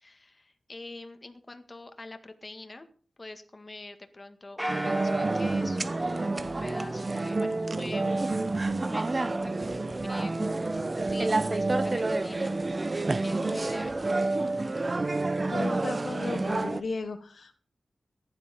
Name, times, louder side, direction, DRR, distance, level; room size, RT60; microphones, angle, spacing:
voice 1, 0.0-2.9 3.2-12.5 13.2-14.0, left 2 dB, 30° left, 7 dB, 1.7 m, -45 dB
sound 1, 4.6-7.3, equal, 5° right, 1.7 m, -38 dB
sound 2, 4.7-16.8, right 2 dB, 35° right, 0.9 m, -29 dB
voice 2, 15.5-17.5, left 4 dB, 75° left, 8 dB, 1.3 m, -35 dB
15.0 x 10.5 x 5.3 m, 0.43 s
wide cardioid pair, 90°, 0 cm